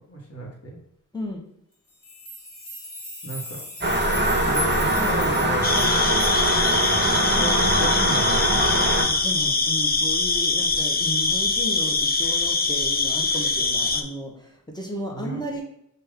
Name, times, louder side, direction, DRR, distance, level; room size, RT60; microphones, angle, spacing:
voice 1, 0.1-0.8 3.2-3.6 4.4-6.0 7.3-8.9 9.4-9.5 15.1-15.4, right 1 dB, 45° left, -1 dB, 1.4 m, -34 dB
voice 2, 1.1-1.5 8.9-15.6, equal, 10° left, 0 dB, 1.1 m, -34 dB
sound 1, 1.9-8.7 9.2-9.3 9.5-9.7 10.2-10.3, left 2 dB, 70° left, 1.5 m, -38 dB
sound 2, 3.8-9.0, right 1 dB, 30° right, 0.9 m, -22 dB
sound 3, 5.6-14.0, left 3 dB, 25° left, 0.5 m, -23 dB
5.3 x 2.7 x 3.4 m, 0.77 s
wide cardioid pair, 50°, 34 cm